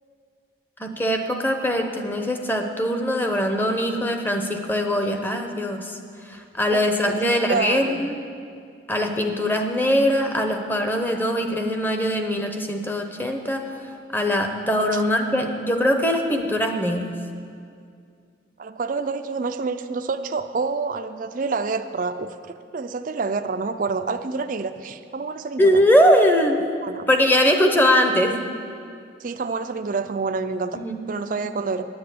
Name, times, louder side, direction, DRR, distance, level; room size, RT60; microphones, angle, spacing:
voice 1, 0.8-6.0 6.3-8.2 8.9-13.7 14.1-17.2 25.6-26.6 27.1-28.4 30.7-31.0, equal, 10° left, 5 dB, 0.7 m, -21 dB
voice 2, 6.6-8.1 14.9-15.0 18.6-25.8 26.8-27.0 29.2-30.8 31.1-31.9, right 4 dB, 45° right, 8 dB, 0.4 m, -28 dB
10.0 x 8.7 x 8.4 m, 2.3 s
head